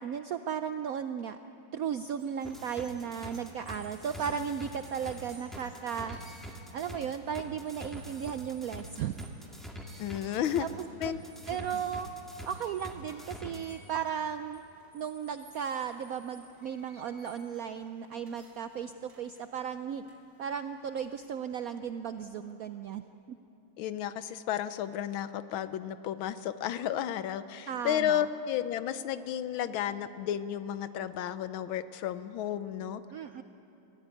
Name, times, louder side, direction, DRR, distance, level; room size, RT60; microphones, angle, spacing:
voice 1, 0.0-1.4 1.7-6.2 6.7-9.3 10.2-10.7 11.0-11.1 11.5-12.1 12.5-14.6 14.9-20.1 20.4-23.4 27.7-28.3 33.1-33.4, right 8 dB, 80° right, 9 dB, 0.8 m, -35 dB
sound 1, 2.1-21.4, right 2 dB, 55° right, 3.5 m, -57 dB
sound 2, 2.4-13.6, equal, ahead, 1.8 m, -45 dB
voice 2, 10.0-10.7 11.0-11.2 23.8-33.0, left 10 dB, 90° left, 13 dB, 1.6 m, -32 dB
23.0 x 15.0 x 9.2 m, 3.0 s
omnidirectional pair, 2.2 m